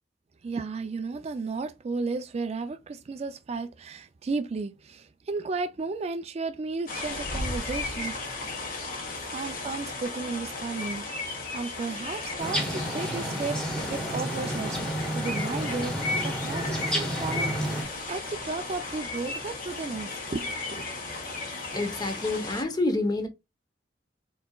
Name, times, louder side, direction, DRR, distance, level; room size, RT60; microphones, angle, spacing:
voice 1, 0.4-8.2 9.3-17.5 18.1-20.9, right 4 dB, 35° right, 0.4 m, -34 dB
sound 1, 6.9-22.6, left 3 dB, 50° left, 1.4 m, -35 dB
sound 2, 12.4-17.8, equal, 5° left, 1.2 m, -31 dB
voice 2, 21.7-23.3, left 2 dB, 25° left, 0.9 m, -28 dB
4.3 x 4.0 x 2.3 m
head